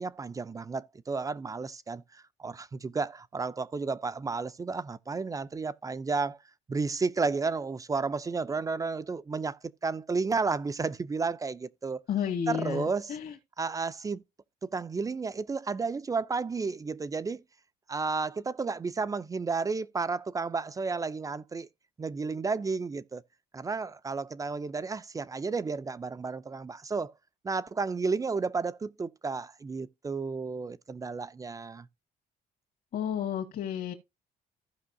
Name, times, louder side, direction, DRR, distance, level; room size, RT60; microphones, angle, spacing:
voice 1, 0.0-6.4 6.7-12.0 12.5-13.2 13.6-14.2 14.6-17.4 17.9-21.7 22.0-23.2 23.5-27.1 27.4-31.9, right 4 dB, 20° right, 0.4 m, -32 dB
voice 2, 12.1-13.3 32.9-33.9, left 9 dB, 60° left, 1.9 m, -32 dB
15.5 x 5.4 x 2.6 m
cardioid pair, 110°, 17 cm